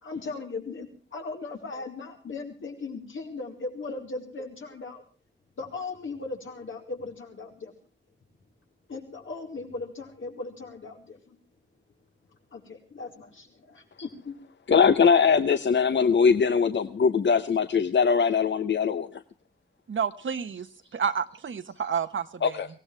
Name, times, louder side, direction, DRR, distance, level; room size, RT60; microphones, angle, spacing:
voice 1, 0.0-5.0 5.6-7.7 8.9-11.4 12.5-14.4, left 3 dB, 90° left, 2 dB, 4.6 m, -38 dB
voice 2, 14.7-19.2 22.4-22.7, left 6 dB, 70° left, 10 dB, 0.8 m, -21 dB
voice 3, 19.9-20.7 20.9-22.6, right 7 dB, 80° right, 10 dB, 1.3 m, -30 dB
23.5 x 17.5 x 3.4 m, 0.36 s
wide cardioid pair, 115°, 20 cm